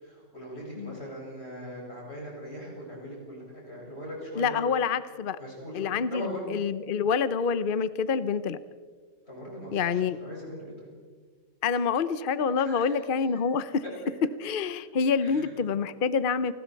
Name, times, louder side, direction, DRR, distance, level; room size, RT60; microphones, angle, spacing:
voice 1, 0.0-4.6 5.4-6.5 9.3-10.9 12.6-13.0 15.2-15.5, equal, 35° left, -4 dB, 7.9 m, -40 dB
voice 2, 4.4-5.4 5.7-8.6 9.7-10.2 11.6-13.8 14.4-16.5, left 6 dB, 55° left, 14 dB, 0.5 m, -27 dB
29.5 x 20.0 x 4.6 m, 1.5 s
omnidirectional pair, 1.9 m